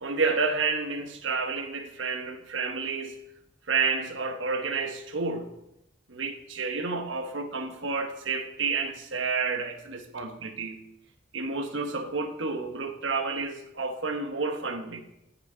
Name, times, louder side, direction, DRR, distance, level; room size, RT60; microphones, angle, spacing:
voice 1, 0.0-3.1 3.7-5.5 6.1-10.8 11.3-15.0, right 4 dB, 70° right, 6 dB, 1.2 m, -30 dB
14.5 x 6.2 x 4.4 m, 0.84 s
head